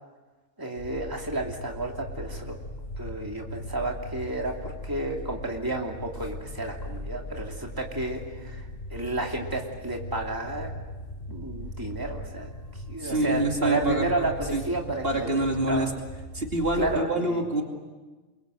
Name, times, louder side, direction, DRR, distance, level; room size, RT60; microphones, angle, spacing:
voice 1, 0.6-2.5 3.0-10.7 11.3-15.9 16.7-17.5, right 2 dB, 15° right, 0 dB, 2.8 m, -32 dB
sound 1, 0.8-17.0, left 1 dB, 45° left, 1.9 m, -39 dB
voice 2, 13.0-14.6 15.0-15.9 16.3-17.6, right 2 dB, 50° right, 2 dB, 2.8 m, -26 dB
28.0 x 23.5 x 8.0 m, 1.3 s
omnidirectional pair, 1.3 m